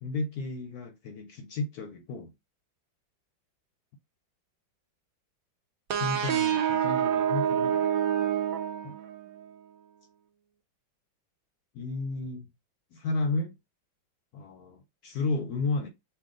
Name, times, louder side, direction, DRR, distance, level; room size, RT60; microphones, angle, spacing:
voice 1, 0.0-2.3 5.9-7.8 8.8-9.0 11.7-12.5 12.9-13.6 14.3-15.9, left 3 dB, 65° left, 1.0 m, -33 dB
sound 1, 5.9-9.4, right 9 dB, 65° right, 0.9 m, -27 dB
5.7 x 2.4 x 3.8 m
omnidirectional pair, 2.1 m